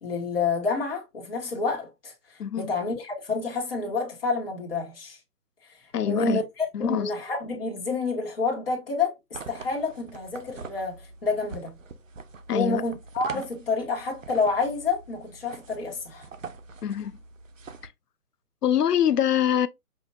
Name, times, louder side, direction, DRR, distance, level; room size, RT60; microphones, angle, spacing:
voice 1, 0.0-5.2 6.0-11.7 12.5-16.3, left 4 dB, 40° left, 1.5 m, -29 dB
voice 2, 2.4-2.7 5.9-6.4 6.7-7.1 12.5-12.8 16.8-17.1 18.6-19.7, left 10 dB, 85° left, 0.6 m, -24 dB
sound 1, 9.3-17.9, right 4 dB, 55° right, 0.6 m, -44 dB
5.5 x 2.7 x 2.3 m
figure-of-eight pair, 155°, 46 cm